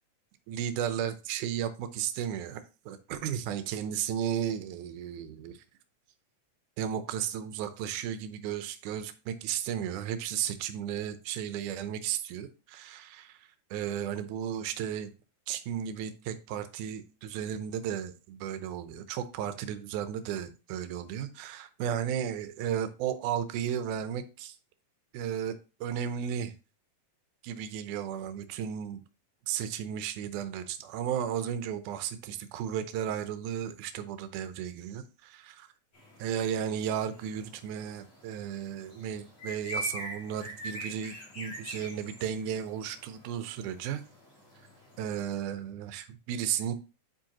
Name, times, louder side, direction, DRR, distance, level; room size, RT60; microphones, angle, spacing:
voice 1, 0.5-5.6 6.8-15.1 15.5-24.6 25.1-26.5 27.4-29.0 29.5-35.7 36.2-44.0 45.0-46.7, right 9 dB, 75° right, 10 dB, 2.0 m, -34 dB
sound 1, 35.9-45.2, equal, 40° left, 2.9 m, -44 dB
9.0 x 4.6 x 2.9 m, 0.32 s
omnidirectional pair, 3.9 m